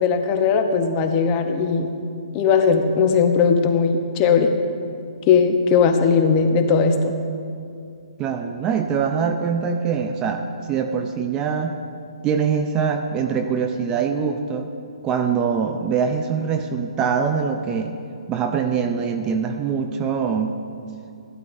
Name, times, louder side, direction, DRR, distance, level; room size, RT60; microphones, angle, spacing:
voice 1, 0.0-1.9 2.3-4.5 5.3-7.1, left 5 dB, 25° left, 5 dB, 0.8 m, -18 dB
voice 2, 8.2-11.8 12.2-14.7 15.0-18.0 18.3-20.6, right 6 dB, 20° right, 6 dB, 0.5 m, -23 dB
15.5 x 12.0 x 2.6 m, 2.5 s
hypercardioid pair, 150°, 3 cm